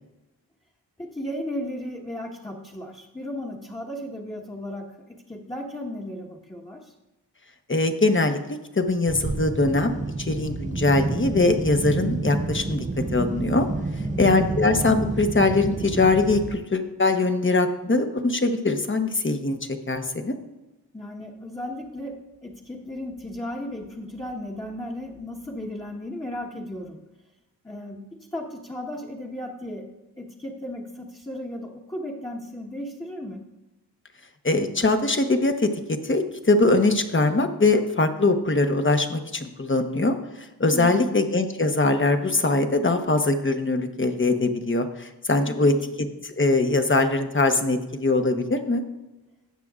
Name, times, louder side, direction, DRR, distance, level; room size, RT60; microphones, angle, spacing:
voice 1, 1.0-6.9 14.0-14.4 20.9-27.1 27.6-29.9 30.2-33.5 40.7-41.2 45.5-45.8, left 1 dB, 10° left, -3 dB, 1.3 m, -35 dB
voice 2, 7.7-8.4 8.7-9.9 10.2-12.8 13.1-13.7 14.2-20.3 34.4-35.7 36.0-45.7 46.2-48.8, left 2 dB, 30° left, 7 dB, 1.0 m, -22 dB
sound 1, 9.0-16.6, right 3 dB, 20° right, 0.6 m, -29 dB
17.5 x 6.0 x 2.5 m, 1.0 s
cardioid pair, 45°, 39 cm